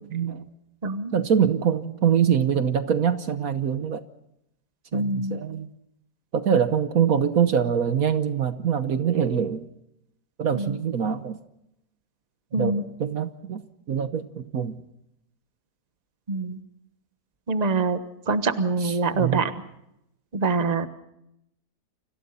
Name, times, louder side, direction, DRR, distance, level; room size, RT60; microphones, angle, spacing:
voice 1, 0.1-0.4 1.1-4.0 4.9-5.7 6.3-9.6 10.4-11.4 12.5-14.7 18.8-19.4, right 8 dB, 65° right, 10 dB, 1.4 m, -24 dB
voice 2, 0.8-1.1 4.9-5.4 10.5-10.8 12.5-12.8 16.3-16.6 17.5-19.5 20.3-20.9, right 3 dB, 25° right, 10 dB, 1.2 m, -25 dB
30.0 x 26.0 x 4.2 m, 0.81 s
omnidirectional pair, 1.7 m